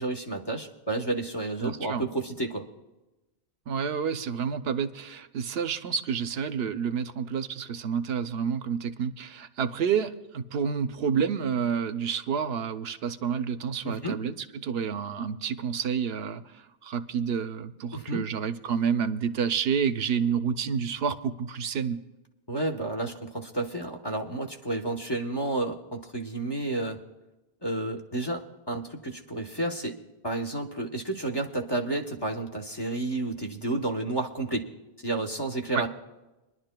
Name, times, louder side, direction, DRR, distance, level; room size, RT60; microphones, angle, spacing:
voice 1, 0.0-2.6 13.8-14.2 17.9-18.2 22.5-27.0 27.6-29.9 30.2-34.7 35.0-35.9, right 2 dB, 25° left, 3 dB, 0.8 m, -31 dB
voice 2, 1.6-2.1 3.7-22.0 35.7-35.8, right 7 dB, 75° right, 10 dB, 0.8 m, -29 dB
26.0 x 11.0 x 2.2 m, 1.0 s
omnidirectional pair, 1.1 m